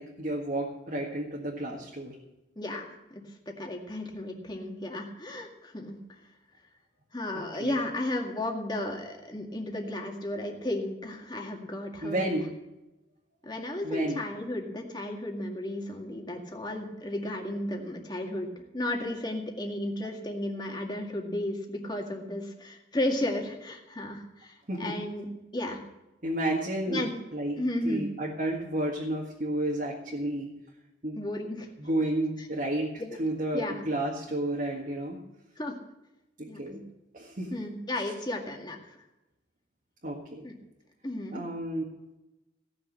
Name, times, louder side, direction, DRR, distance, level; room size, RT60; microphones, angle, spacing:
voice 1, 0.0-2.1 7.6-7.8 12.0-12.5 13.8-14.2 24.7-25.0 26.2-27.0 27.3-30.5 31.0-31.2 31.8-32.9 33.2-35.2 36.4-36.8 37.1-37.6 40.0-40.5 41.3-41.8, right 1 dB, 45° right, -2 dB, 1.8 m, -31 dB
voice 2, 2.6-6.0 7.1-12.3 13.4-24.5 24.8-25.3 25.5-25.8 26.9-27.1 27.6-28.0 31.2-31.7 33.0-33.2 33.5-33.8 35.6-35.7 36.5-36.8 37.5-38.8 40.4-40.5 41.0-41.4, left 1 dB, 25° left, 1 dB, 2.0 m, -34 dB
17.0 x 6.5 x 7.7 m, 0.99 s
head